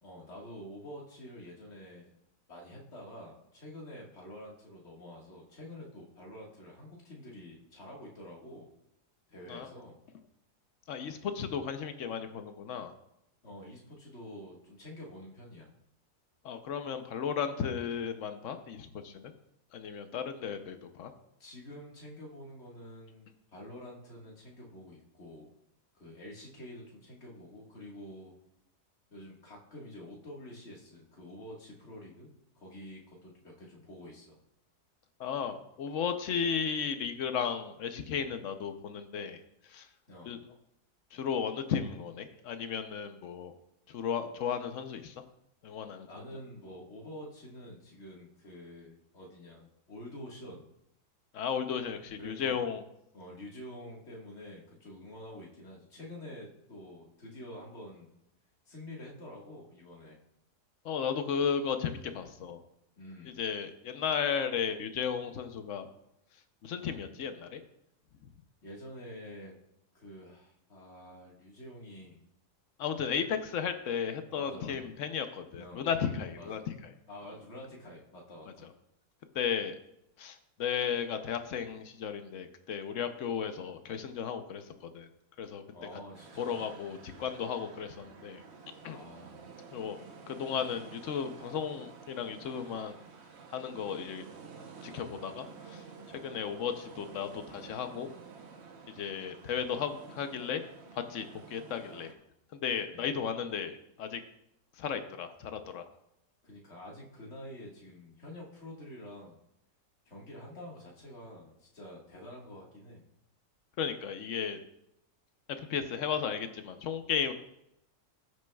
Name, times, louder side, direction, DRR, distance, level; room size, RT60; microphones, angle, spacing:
voice 1, 0.0-2.1 2.5-8.7 9.3-10.0 13.4-15.7 21.4-25.5 25.9-28.3 29.1-32.3 32.6-34.4 40.1-40.4 46.1-50.7 52.2-52.7 53.1-58.1 58.7-60.2 63.0-63.4 68.6-69.5 69.9-72.3 74.4-74.9 75.5-75.9 76.3-76.7 77.1-78.7 85.7-86.7 88.9-89.4 102.9-103.1 106.4-109.4 110.1-113.0, left 1 dB, 45° left, -2 dB, 1.9 m, -48 dB
voice 2, 10.9-12.9 16.4-19.3 19.7-21.1 35.2-39.4 39.7-39.9 40.3-40.4 41.1-43.5 43.9-45.1 45.6-46.1 51.3-52.8 60.8-62.6 63.3-65.9 66.6-67.6 72.8-76.7 79.3-79.7 80.2-84.6 84.9-85.1 85.4-85.6 86.4-88.4 88.8-89.0 89.7-90.0 90.3-92.9 93.5-94.2 94.8-95.8 96.1-98.1 98.9-100.6 100.9-102.1 102.6-104.2 104.8-105.9 113.8-114.6 115.6-117.3, left 7 dB, 60° left, 8 dB, 0.9 m, -34 dB
sound 1, 86.1-102.1, right 5 dB, 50° right, 1.0 m, -51 dB
15.0 x 6.4 x 2.3 m, 0.81 s
omnidirectional pair, 1.7 m